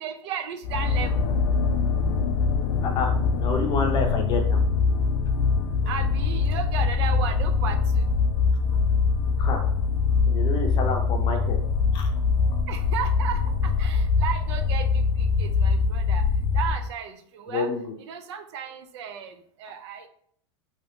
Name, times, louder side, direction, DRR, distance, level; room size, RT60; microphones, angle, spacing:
voice 1, 0.0-1.4 5.8-8.1 12.7-16.3 16.5-17.7 18.1-20.1, right 7 dB, 70° right, 7 dB, 0.5 m, -34 dB
sound 1, 0.6-16.9, left 5 dB, 75° left, 0.5 m, -23 dB
voice 2, 2.8-3.1 3.4-4.6 9.4-9.6 10.3-11.6 11.9-12.1 17.5-17.9, left 4 dB, 30° left, 3 dB, 0.6 m, -28 dB
3.3 x 2.8 x 2.7 m, 0.64 s
supercardioid pair, 145°, 15 cm